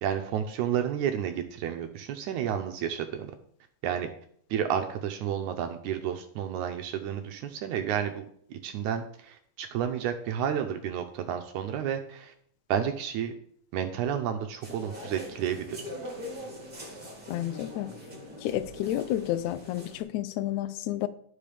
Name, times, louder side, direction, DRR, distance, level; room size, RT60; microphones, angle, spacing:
voice 1, 0.0-3.3 3.8-4.1 4.5-12.3 12.7-13.3 13.7-15.7, right 9 dB, 75° right, 6 dB, 1.8 m, -31 dB
sound 1, 14.6-20.0, left 1 dB, 20° right, 1.6 m, -42 dB
voice 2, 17.3-17.9 18.4-21.1, left 13 dB, 85° left, 13 dB, 1.7 m, -30 dB
12.5 x 5.4 x 3.4 m, 0.63 s
omnidirectional pair, 3.9 m